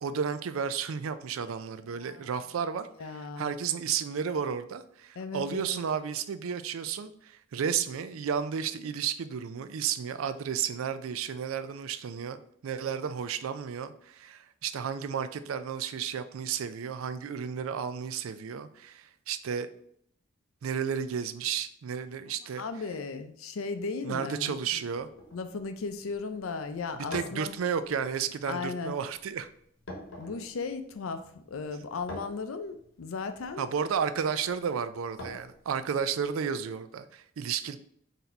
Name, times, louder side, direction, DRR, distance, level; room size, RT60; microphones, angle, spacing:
voice 1, 0.0-19.7 20.6-22.6 24.0-25.1 26.9-29.5 33.6-37.8, right 7 dB, 85° right, 12 dB, 0.4 m, -32 dB
voice 2, 1.9-2.2 3.0-3.6 5.2-5.8 22.6-24.5 25.3-27.5 28.5-28.9 30.2-33.7, left 4 dB, 85° left, 9 dB, 0.5 m, -36 dB
sound 1, 25.0-36.3, left 1 dB, 70° left, 0.9 m, -48 dB
4.0 x 2.7 x 4.4 m, 0.67 s
head